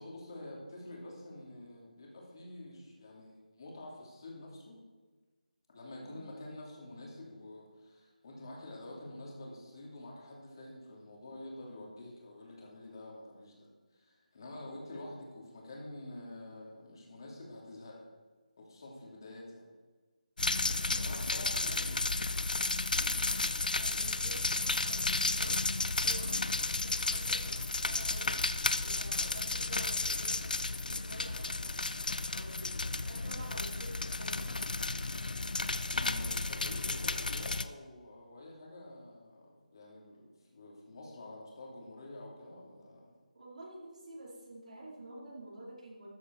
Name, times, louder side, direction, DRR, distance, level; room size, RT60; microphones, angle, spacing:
voice 1, 0.0-4.8 5.7-18.0 18.6-19.7 21.0-22.0 22.9-23.2 35.8-43.1, left 1 dB, 30° left, -2 dB, 3.0 m, -48 dB
sound 1, 20.4-37.6, left 3 dB, 80° left, 0.7 m, -33 dB
voice 2, 20.6-22.1 23.7-25.7 26.0-28.4 28.8-31.8 32.3-32.8 33.0-34.7 43.3-46.1, right 1 dB, 60° right, -4 dB, 4.8 m, -50 dB
13.5 x 9.4 x 4.8 m, 1.3 s
figure-of-eight pair, 175°, 5 cm